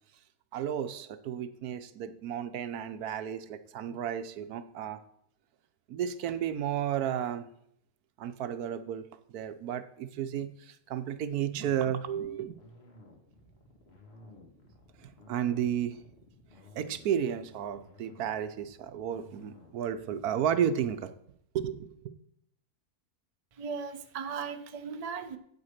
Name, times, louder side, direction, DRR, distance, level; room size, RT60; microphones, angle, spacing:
voice 1, 0.5-5.0 5.9-7.5 8.2-12.6 15.3-16.0 16.7-21.1 21.5-21.9, right 9 dB, 75° right, 11 dB, 1.2 m, -33 dB
sound 1, 11.6-21.1, left 2 dB, 40° left, 2.1 m, -55 dB
voice 2, 23.6-25.4, right 6 dB, 40° right, 7 dB, 0.5 m, -37 dB
8.1 x 7.9 x 5.7 m, 0.69 s
omnidirectional pair, 1.6 m